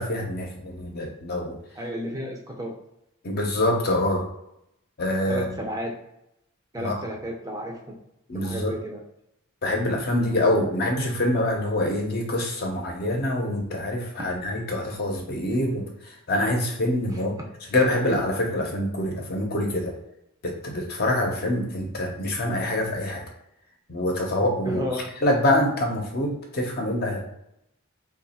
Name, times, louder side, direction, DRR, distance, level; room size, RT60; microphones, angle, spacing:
voice 1, 0.0-1.6 3.2-4.3 5.0-5.5 6.8-7.0 8.3-8.7 9.6-17.3 17.7-19.9 20.4-23.2 23.9-24.8 25.2-27.2, left 1 dB, 45° left, 1 dB, 0.7 m, -25 dB
voice 2, 1.8-2.7 5.3-5.9 6.7-8.0 8.4-9.0 17.1-17.2 24.6-25.1, equal, 15° right, 0 dB, 0.5 m, -32 dB
3.0 x 2.3 x 4.1 m, 0.82 s
head